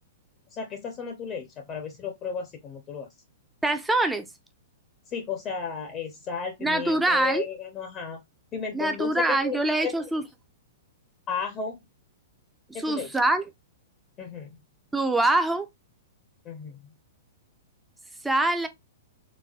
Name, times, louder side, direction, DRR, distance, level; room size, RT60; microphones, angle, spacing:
voice 1, 0.5-3.1 5.1-8.2 8.5-9.9 11.3-11.8 12.7-13.1 14.2-14.6 16.4-16.9, left 5 dB, 30° left, 0.7 m, -34 dB
voice 2, 3.6-4.3 6.6-7.4 8.7-10.2 12.8-13.4 14.9-15.7 18.2-18.7, right 2 dB, 5° right, 0.5 m, -24 dB
4.0 x 2.2 x 2.4 m
hypercardioid pair, 135°, 0 cm